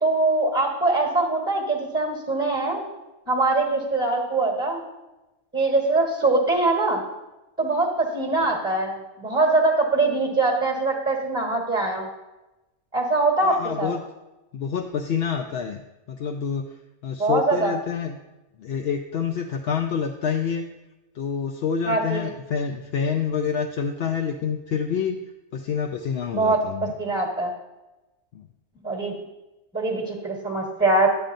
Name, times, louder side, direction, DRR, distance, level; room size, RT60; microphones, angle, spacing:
voice 1, 0.0-2.8 3.3-4.8 5.5-7.0 7.6-12.1 12.9-13.9 17.2-17.7 21.9-22.3 26.3-26.6 27.0-27.5 28.8-29.1 29.7-31.1, right 2 dB, 10° right, -2 dB, 1.3 m, -22 dB
voice 2, 13.4-14.0 14.5-15.8 16.1-16.7 17.0-18.2 18.6-20.7 21.2-25.2 25.5-26.9 28.3-28.5, left 7 dB, 65° left, 4 dB, 0.7 m, -27 dB
10.5 x 8.7 x 2.6 m, 1.0 s
omnidirectional pair, 1.3 m